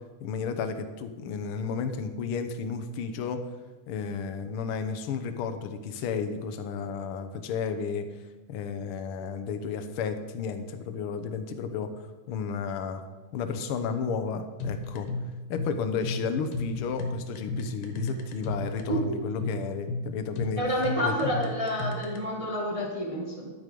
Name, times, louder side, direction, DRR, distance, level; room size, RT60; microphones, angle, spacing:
voice 1, 0.2-3.4 3.9-8.1 8.5-11.9 12.3-13.0 13.3-15.1 15.5-20.6 21.0-21.3, left 6 dB, 65° left, 7 dB, 1.4 m, -32 dB
sound 1, 14.6-22.2, left 2 dB, 90° left, 2.8 m, -33 dB
voice 2, 18.9-19.2 20.6-23.5, equal, 25° right, -2 dB, 0.7 m, -29 dB
12.5 x 8.1 x 5.3 m, 1.2 s
omnidirectional pair, 3.5 m